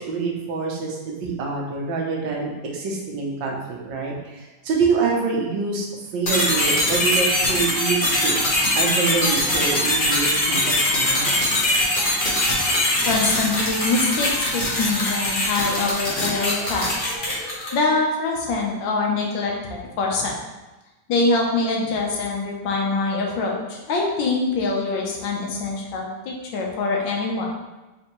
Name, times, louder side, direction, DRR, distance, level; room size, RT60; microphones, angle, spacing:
voice 1, 0.0-5.9 6.1-11.5, right 4 dB, 90° right, -1 dB, 1.5 m, -26 dB
sound 1, 6.3-17.8, left 1 dB, 35° left, 1.0 m, -22 dB
voice 2, 13.1-17.1 17.7-20.4 21.1-27.5, left 3 dB, 85° left, -1 dB, 1.5 m, -24 dB
4.3 x 3.7 x 3.0 m, 1.1 s
omnidirectional pair, 2.0 m